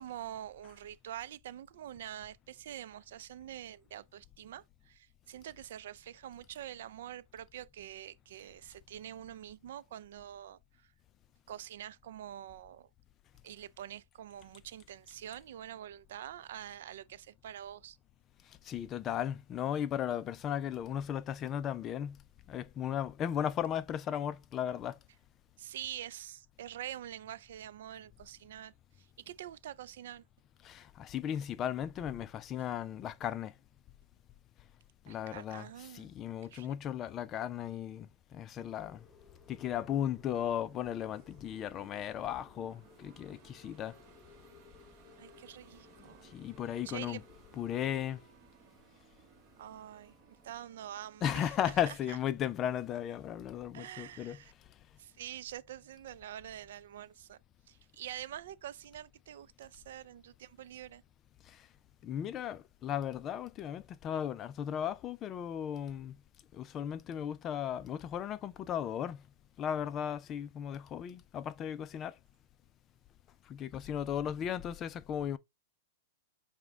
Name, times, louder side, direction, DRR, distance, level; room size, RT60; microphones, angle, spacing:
voice 1, 0.0-10.9 11.5-12.9 13.4-18.0 25.6-30.2 35.1-36.2 36.5-36.7 45.2-46.4 46.8-47.2 49.6-52.2 53.7-54.5 55.0-57.4 57.7-61.0, right 11 dB, 65° right, 0.4 m, -46 dB
voice 2, 18.5-22.2 22.5-25.0 30.6-33.5 35.1-35.7 35.9-39.1 39.5-44.0 46.2-47.2 47.6-48.2 51.2-54.4 61.5-61.7 62.0-66.2 66.5-69.2 69.6-72.2 73.5-75.4, left 10 dB, 25° left, 0.3 m, -36 dB
sound 1, 38.6-48.1, left 5 dB, 10° left, 0.7 m, -61 dB
sound 2, 40.4-52.0, right 5 dB, 35° right, 1.1 m, -61 dB
4.9 x 2.2 x 3.5 m
hypercardioid pair, 150°, 0 cm